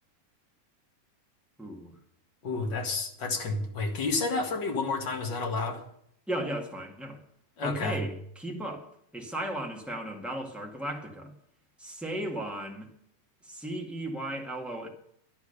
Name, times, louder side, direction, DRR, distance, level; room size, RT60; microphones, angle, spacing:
voice 1, 1.6-1.9 6.3-7.2 7.6-8.9 9.1-11.3 11.8-12.9 13.4-14.9, right 1 dB, ahead, 0 dB, 0.7 m, -35 dB
voice 2, 2.4-5.8 7.6-8.0, left 3 dB, 40° left, 3 dB, 2.0 m, -30 dB
11.5 x 10.5 x 6.7 m, 0.68 s
omnidirectional pair, 3.8 m